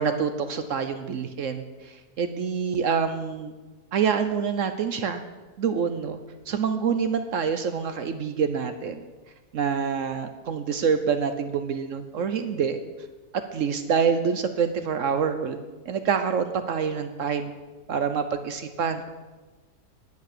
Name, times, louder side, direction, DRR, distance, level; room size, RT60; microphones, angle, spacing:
voice 1, 0.0-3.5 3.9-5.2 5.6-6.2 6.5-9.0 9.5-12.8 13.3-15.6 15.9-17.5 17.9-19.1, right 6 dB, 60° right, 9 dB, 0.9 m, -26 dB
10.5 x 8.2 x 6.7 m, 1.2 s
omnidirectional pair, 1.7 m